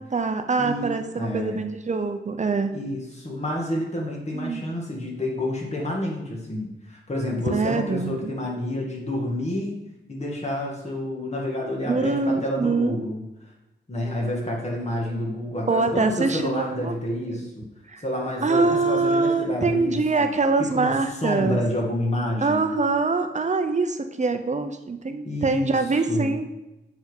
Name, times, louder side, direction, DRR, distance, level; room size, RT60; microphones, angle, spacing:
voice 1, 0.0-2.8 4.3-4.6 7.5-8.4 11.9-13.1 15.7-16.9 17.4-17.5 17.9-18.0 18.4-21.6 22.4-26.5, right 3 dB, 40° right, 7 dB, 0.7 m, -24 dB
voice 2, 0.6-1.6 2.7-9.8 10.1-13.2 13.9-17.7 18.0-20.0 20.7-20.9 21.2-22.7 25.3-25.8 26.1-26.3, left 1 dB, 35° left, -2 dB, 2.1 m, -29 dB
7.3 x 5.5 x 5.4 m, 0.96 s
wide cardioid pair, 135°, 19 cm